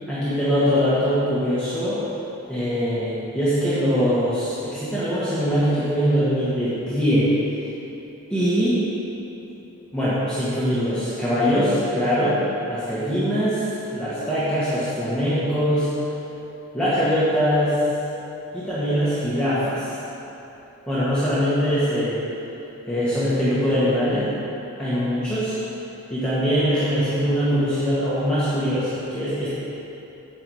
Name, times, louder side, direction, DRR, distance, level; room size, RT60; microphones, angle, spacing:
voice 1, 0.1-2.0 2.5-7.3 8.3-8.8 9.9-12.4 12.7-15.9 16.7-17.8 18.5-19.9 20.9-22.2 22.9-24.3 24.8-25.6 26.1-29.5, equal, 5° left, -13 dB, 1.6 m, -22 dB
9.8 x 7.7 x 4.8 m, 3.0 s
head